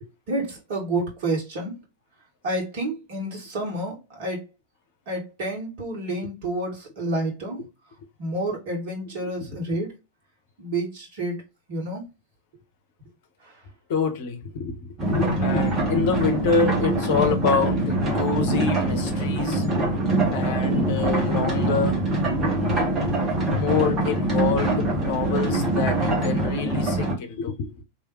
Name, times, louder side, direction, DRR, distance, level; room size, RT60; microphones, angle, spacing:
voice 1, 0.0-1.8 2.4-4.4 5.1-7.6 8.2-10.0 10.6-11.4 11.7-12.1 13.4-13.5, right 1 dB, 50° right, 1.4 m, -29 dB
voice 2, 9.2-9.6 13.9-19.7 20.3-22.0 23.5-27.8, left 5 dB, 50° left, 0.9 m, -27 dB
sound 1, 15.0-27.1, right 1 dB, 25° right, 1.5 m, -23 dB
3.3 x 2.7 x 3.1 m
figure-of-eight pair, 90°, 0 cm